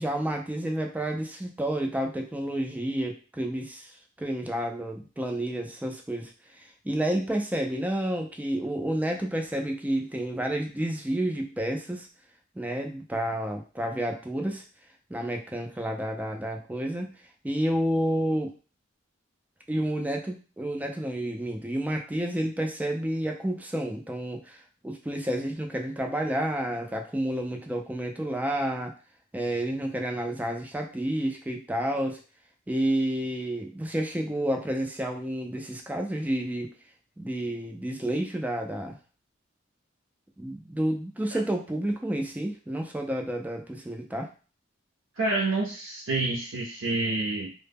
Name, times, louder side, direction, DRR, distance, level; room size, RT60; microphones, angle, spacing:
voice 1, 0.0-12.1 12.6-14.6 15.1-17.1 17.4-18.5 19.7-28.9 29.3-32.2 32.7-36.7 37.2-39.0 40.4-44.3, right 1 dB, 10° right, 2 dB, 0.3 m, -30 dB
voice 2, 45.2-47.5, right 2 dB, 85° right, -3 dB, 0.5 m, -28 dB
2.0 x 2.0 x 3.4 m, 0.36 s
head